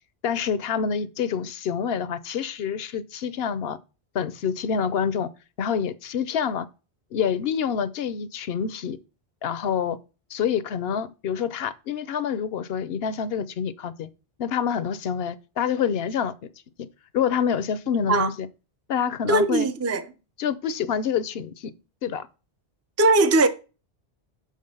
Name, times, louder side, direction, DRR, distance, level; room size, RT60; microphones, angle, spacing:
voice 1, 0.2-3.8 4.1-5.3 5.6-6.7 7.1-9.0 9.4-10.0 10.3-14.1 14.4-16.3 17.1-18.5 18.9-19.7 20.4-21.7 22.0-22.3, left 7 dB, 70° left, 0.8 m, -27 dB
voice 2, 19.3-20.1 23.0-23.5, right 2 dB, 25° right, 0.3 m, -19 dB
6.0 x 5.2 x 5.3 m
omnidirectional pair, 1.1 m